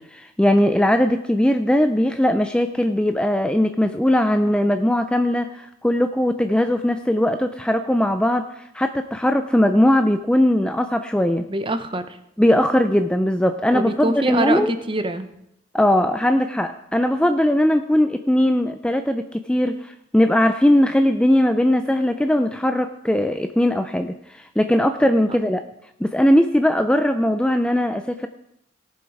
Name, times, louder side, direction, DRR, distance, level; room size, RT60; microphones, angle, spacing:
voice 1, 0.0-8.5 8.7-11.5 12.4-14.7 15.7-25.6 26.0-28.3, left 1 dB, 5° left, 8 dB, 0.4 m, -19 dB
voice 2, 11.5-12.0 13.7-15.3 25.3-25.4, right 2 dB, 25° right, 10 dB, 0.7 m, -24 dB
18.0 x 7.2 x 4.8 m, 0.80 s
head